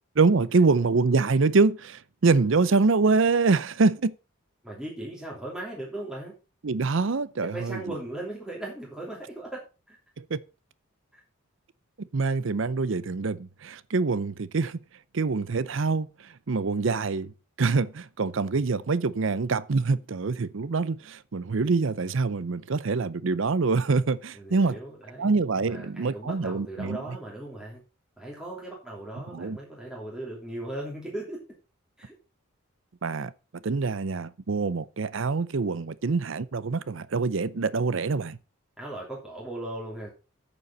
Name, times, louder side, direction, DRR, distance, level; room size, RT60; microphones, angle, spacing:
voice 1, 0.2-4.1 6.6-7.9 10.2-10.4 12.1-14.8 15.1-16.1 16.5-17.3 17.6-24.8 25.2-27.2 29.3-29.6 33.0-33.3 33.6-38.4, right 4 dB, 60° right, 0.6 m, -25 dB
voice 2, 4.6-6.3 7.5-9.6 9.9-10.0 24.3-25.3 25.6-27.8 28.2-31.4 32.0-32.1 38.8-40.1, right 1 dB, 5° right, 2.9 m, -38 dB
9.1 x 7.0 x 5.5 m
head